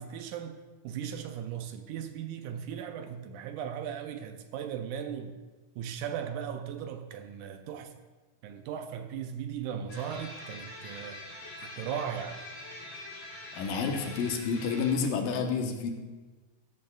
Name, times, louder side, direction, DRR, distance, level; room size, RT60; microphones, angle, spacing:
voice 1, 0.0-5.4 5.8-8.0 8.4-11.2 11.6-12.5, right 8 dB, 80° right, 2.0 m, -37 dB
sound 1, 9.9-14.9, left 1 dB, 55° left, 4.1 m, -44 dB
voice 2, 13.5-15.9, left 5 dB, 85° left, 2.7 m, -29 dB
15.5 x 12.0 x 2.3 m
omnidirectional pair, 3.8 m